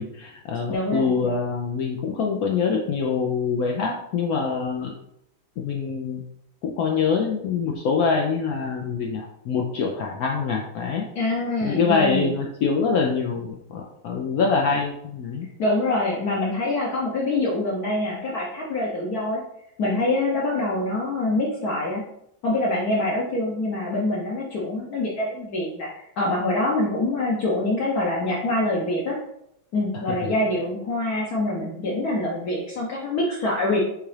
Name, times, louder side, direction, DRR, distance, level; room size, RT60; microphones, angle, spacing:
voice 1, 0.0-4.9 5.6-6.2 6.6-11.1 11.6-15.5 30.1-30.2, left 5 dB, 90° left, 0 dB, 0.8 m, -25 dB
voice 2, 0.7-1.1 11.1-12.3 15.6-19.4 19.8-22.0 22.4-29.2 29.7-33.8, left 2 dB, 60° left, -4 dB, 1.1 m, -25 dB
6.7 x 2.3 x 3.2 m, 0.79 s
omnidirectional pair, 2.2 m